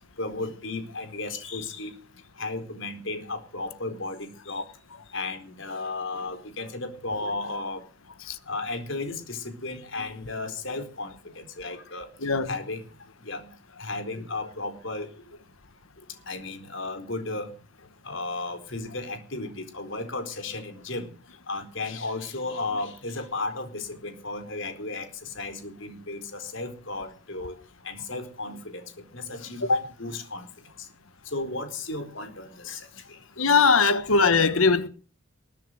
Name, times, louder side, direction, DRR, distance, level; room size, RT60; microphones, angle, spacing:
voice 1, 0.2-1.9 2.4-4.7 5.1-7.8 8.5-12.1 12.5-12.8 13.2-13.5 13.8-15.1 16.3-17.5 18.0-21.1 21.5-27.5 27.8-28.8 29.1-30.4 31.3-32.9 34.0-34.2, left 3 dB, 65° left, 4.2 m, -34 dB
voice 2, 12.2-12.5 29.6-29.8 33.4-34.9, left 4 dB, 85° left, 1.4 m, -20 dB
21.0 x 10.5 x 6.5 m
head